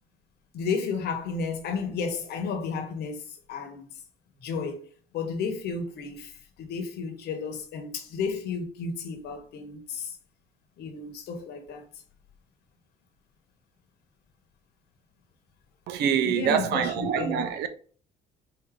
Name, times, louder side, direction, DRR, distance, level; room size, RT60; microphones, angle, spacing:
voice 1, 0.5-3.9 4.4-4.9 5.1-10.2 10.8-11.8 16.2-17.5, left 5 dB, 75° left, 1.1 m, -33 dB
voice 2, 15.9-17.7, right 8 dB, 80° right, 0.7 m, -25 dB
4.7 x 2.7 x 3.7 m
cardioid pair, 110°, 17 cm